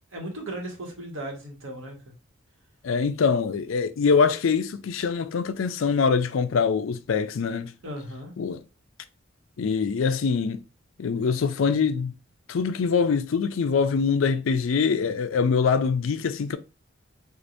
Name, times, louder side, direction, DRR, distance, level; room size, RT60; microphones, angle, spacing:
voice 1, 0.0-2.0 7.8-8.3, right 1 dB, 80° right, 1.4 m, -36 dB
voice 2, 2.8-7.7 8.4-8.6 9.6-10.6 11.0-12.1 12.5-16.6, left 5 dB, 75° left, 0.4 m, -24 dB
4.7 x 2.5 x 2.6 m
head